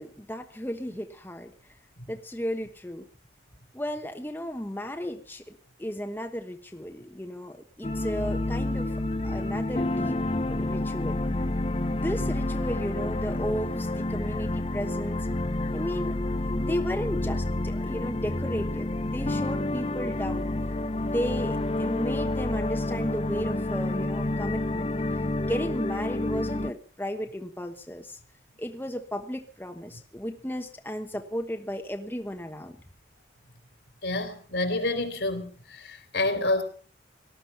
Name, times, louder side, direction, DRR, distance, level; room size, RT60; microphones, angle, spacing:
voice 1, 0.0-1.5 2.1-3.0 3.7-8.9 9.2-10.2 10.5-11.2 11.9-15.3 15.7-16.2 16.5-20.5 21.0-24.9 25.4-28.2 28.6-32.8, equal, 10° left, 5 dB, 1.1 m, -34 dB
sound 1, 7.8-26.7, left 2 dB, 30° left, 0.7 m, -29 dB
voice 2, 34.0-36.6, left 2 dB, 75° left, 8 dB, 3.3 m, -28 dB
18.5 x 13.0 x 5.7 m, 0.42 s
head